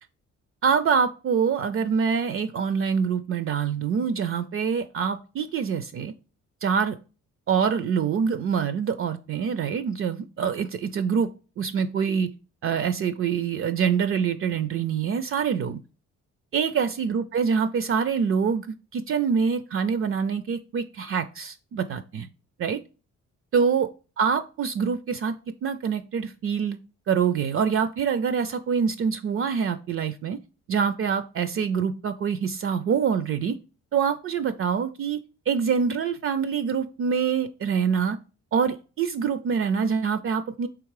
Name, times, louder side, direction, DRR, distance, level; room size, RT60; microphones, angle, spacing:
voice 1, 0.6-6.1 6.6-7.0 7.5-11.3 11.6-12.3 12.6-15.8 16.5-22.3 22.6-22.8 23.5-23.9 24.2-25.4 25.6-26.8 27.1-30.4 30.7-33.6 33.9-35.2 35.5-38.2 38.5-40.7, right 6 dB, 45° right, 11 dB, 0.4 m, -25 dB
3.6 x 3.1 x 4.7 m, 0.34 s
cardioid pair, 90°, 30 cm